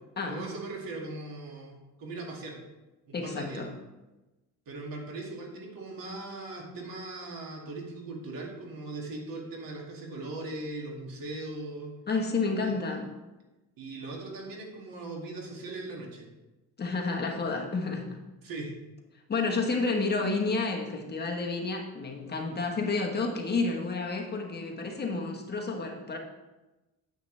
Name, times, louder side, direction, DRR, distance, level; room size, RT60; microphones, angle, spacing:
voice 1, 0.3-2.6 3.1-3.6 4.7-11.9 12.6-12.7 13.8-16.2 18.4-18.7, right 2 dB, 75° right, 0 dB, 2.2 m, -39 dB
voice 2, 3.1-3.7 12.1-13.1 16.8-18.2 19.3-26.2, left 3 dB, 30° left, 1 dB, 1.2 m, -30 dB
9.0 x 8.1 x 3.3 m, 1.1 s
cardioid pair, 150°, 34 cm